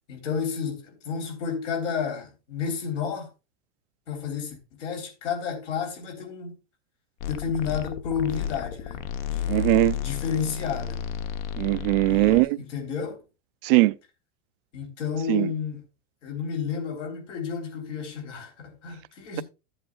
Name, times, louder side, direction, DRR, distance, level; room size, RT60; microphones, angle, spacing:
voice 1, 0.1-3.3 4.1-6.6 7.3-9.6 9.8-11.0 12.1-13.2 14.7-15.8 16.2-19.4, left 6 dB, 75° left, 3.6 m, -31 dB
sound 1, 7.2-12.4, left 9 dB, 55° left, 0.9 m, -32 dB
voice 2, 9.5-10.0 11.6-12.6 13.6-13.9 15.3-15.5, right 20 dB, 50° right, 0.4 m, -20 dB
13.5 x 7.9 x 2.3 m
supercardioid pair, 140°, 36 cm